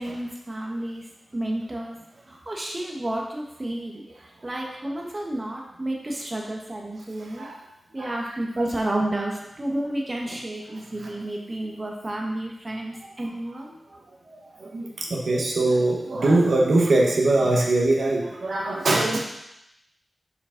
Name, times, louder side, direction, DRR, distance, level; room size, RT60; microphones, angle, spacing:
voice 1, 0.0-2.0 2.3-7.5 7.9-13.8, right 1 dB, 25° right, -1 dB, 1.1 m, -31 dB
voice 2, 14.6-19.2, right 2 dB, 65° right, -1 dB, 1.1 m, -22 dB
6.9 x 5.0 x 3.8 m, 0.82 s
wide cardioid pair, 110°, 0 cm